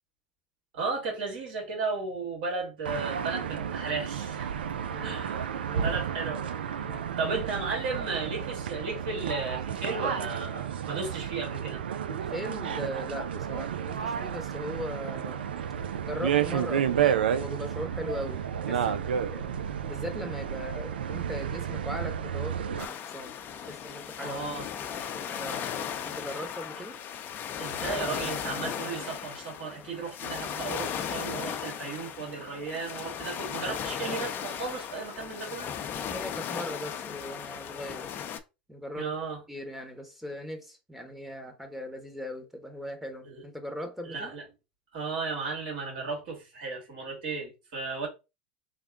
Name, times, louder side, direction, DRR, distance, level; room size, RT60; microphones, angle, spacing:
voice 1, 0.7-4.5 4.9-5.5 5.8-6.9 7.2-11.8 24.2-24.6 27.6-35.7 39.0-39.4 43.3-43.4 44.0-44.4 44.9-48.1, right 4 dB, 70° right, 2.0 m, -35 dB
sound 1, 2.8-22.8, right 8 dB, 85° right, 0.4 m, -31 dB
voice 2, 4.9-5.2 5.5-5.9 6.8-7.1 12.1-15.4 16.0-18.4 18.7-19.5 19.9-23.3 23.7-24.6 24.9-25.7 26.0-27.0 35.9-38.2 38.7-39.1 39.5-44.3, equal, 5° right, 1.0 m, -39 dB
sound 2, 22.8-38.4, left 8 dB, 40° left, 0.6 m, -36 dB
3.5 x 2.2 x 3.6 m
hypercardioid pair, 90°, 5 cm